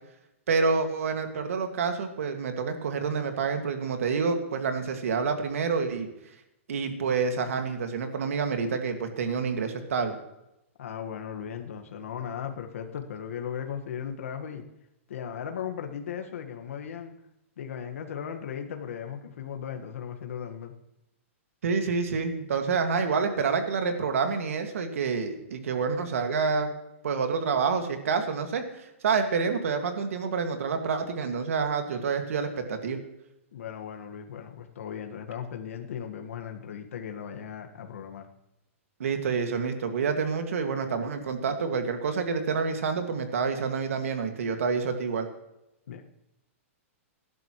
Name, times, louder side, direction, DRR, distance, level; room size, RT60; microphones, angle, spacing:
voice 1, 0.5-6.1 6.7-10.2 21.6-26.7 27.0-28.6 29.0-33.0 39.0-45.3, right 5 dB, 75° right, 6 dB, 2.0 m, -28 dB
voice 2, 10.8-14.6 15.1-17.1 17.6-20.7 33.5-38.3 45.9-46.0, left 8 dB, 70° left, 4 dB, 1.6 m, -37 dB
18.0 x 11.5 x 3.1 m, 0.88 s
hypercardioid pair, 165°, 8 cm